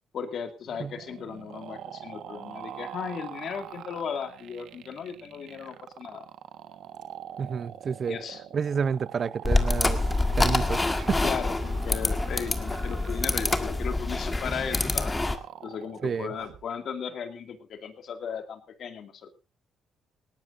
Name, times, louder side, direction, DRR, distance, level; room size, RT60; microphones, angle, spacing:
voice 1, 0.1-6.3 8.1-8.4 11.2-15.2 15.6-19.4, left 7 dB, 65° left, 2.3 m, -36 dB
sound 1, 0.7-16.6, right 10 dB, 80° right, 1.4 m, -44 dB
voice 2, 7.4-8.2 8.5-10.0 10.4-11.2 16.0-16.3, right 6 dB, 50° right, 0.7 m, -29 dB
sound 2, 9.4-15.4, left 2 dB, 20° left, 1.7 m, -26 dB
19.0 x 17.5 x 2.6 m
cardioid pair, 90°, 0 cm